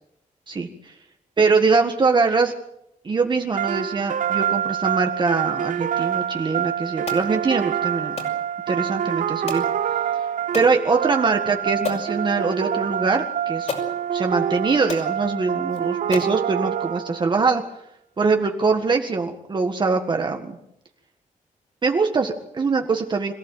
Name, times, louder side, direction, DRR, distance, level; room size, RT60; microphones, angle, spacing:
voice 1, 1.4-2.5 3.0-8.2 8.7-9.6 10.5-13.7 14.1-17.6 18.2-20.6 21.8-23.3, right 4 dB, 35° right, 4 dB, 1.8 m, -22 dB
sound 1, 3.6-17.4, right 9 dB, 70° right, 0.8 m, -26 dB
sound 2, 7.1-7.3 8.2-8.4 9.5-9.7 10.5-10.7 11.3-11.4 11.8-12.1 13.1-13.2 13.7-13.9 14.6-14.7 14.9-15.1 15.7-15.8 16.1-16.4, left 4 dB, 55° left, 5.8 m, -32 dB
26.5 x 16.0 x 9.1 m, 0.80 s
wide cardioid pair, 160°, 14 cm